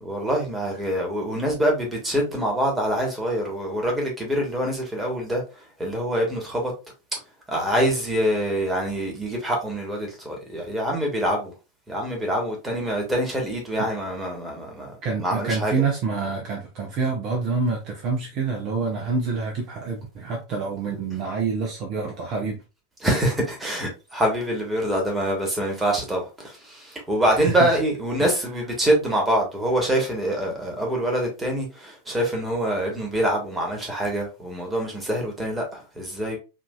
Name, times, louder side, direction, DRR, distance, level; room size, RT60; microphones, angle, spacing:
voice 1, 0.0-5.4 5.8-6.7 7.5-11.5 11.9-15.0 15.2-15.7 23.0-36.4, right 1 dB, 10° right, 1.6 m, -25 dB
voice 2, 15.0-22.6 27.3-27.8 28.2-28.3, right 4 dB, 40° right, 0.9 m, -27 dB
4.9 x 2.7 x 2.4 m
figure-of-eight pair, 90°, 0 cm